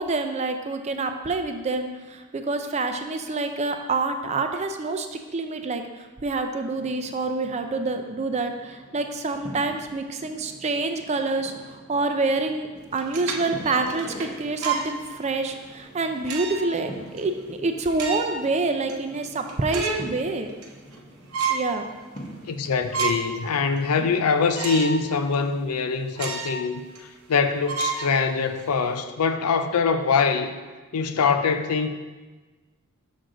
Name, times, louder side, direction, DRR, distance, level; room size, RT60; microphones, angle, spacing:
voice 1, 0.0-5.1 5.3-20.5 21.5-21.9, right 3 dB, 30° right, 0.4 m, -27 dB
sound 1, 6.7-25.8, equal, 35° left, 0.9 m, -45 dB
sound 2, 12.9-14.9 15.5-15.6 16.2-16.8 17.2-17.3 17.8-18.5 18.9-19.0 19.3-20.1 20.5-21.0 21.3-21.7 22.2-22.3 22.6-23.4 23.8-23.9 24.5-25.0 25.3-25.4 26.1-26.6 26.9-27.0 27.7-28.6, right 5 dB, 85° right, 0.8 m, -30 dB
voice 2, 22.5-26.8 27.3-30.5 30.9-31.9, left 5 dB, 90° left, 0.5 m, -23 dB
6.3 x 6.2 x 3.8 m
head